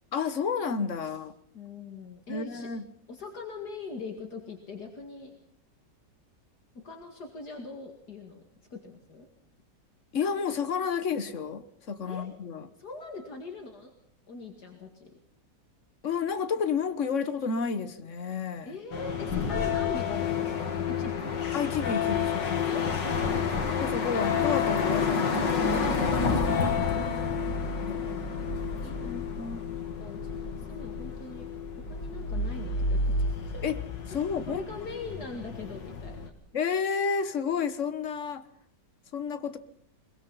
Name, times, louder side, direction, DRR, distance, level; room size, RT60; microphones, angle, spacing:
voice 1, 0.1-1.3 2.3-2.8 10.1-12.7 16.0-18.8 21.5-22.7 23.8-26.3 26.9-27.1 27.9-28.6 29.1-29.6 33.6-33.8 34.1-34.6 36.5-38.4 39.1-39.6, left 6 dB, 45° left, 12 dB, 1.5 m, -31 dB
voice 2, 1.5-2.7 3.1-5.3 6.7-8.4 8.7-9.3 12.1-12.3 12.8-13.9 14.3-15.1 18.7-20.6 20.9-21.4 22.6-23.5 26.3-26.9 27.8-28.5 28.8-31.5 31.8-33.1 33.5-33.6 34.5-36.3, left 4 dB, 65° left, 2 dB, 2.7 m, -42 dB
sound 1, 18.9-36.3, left 5 dB, 85° left, 2.8 m, -29 dB
22.5 x 21.5 x 5.6 m, 0.72 s
omnidirectional pair, 1.9 m